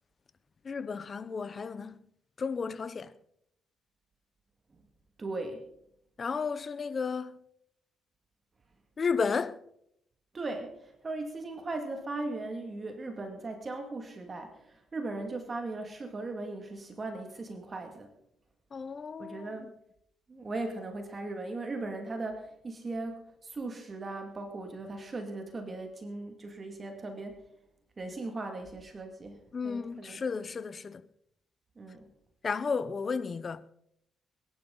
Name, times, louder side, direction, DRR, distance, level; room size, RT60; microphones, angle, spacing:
voice 1, 0.6-2.0 2.4-3.1 6.2-7.4 9.0-9.6 18.7-19.5 29.5-31.0 32.4-33.6, left 5 dB, 40° left, 0.8 m, -33 dB
voice 2, 5.2-5.7 10.3-18.1 19.2-19.7 20.3-27.4 28.0-30.2 31.8-32.1, right 2 dB, 35° right, 2.2 m, -38 dB
22.0 x 11.5 x 3.9 m
cardioid pair, 90°, 0 cm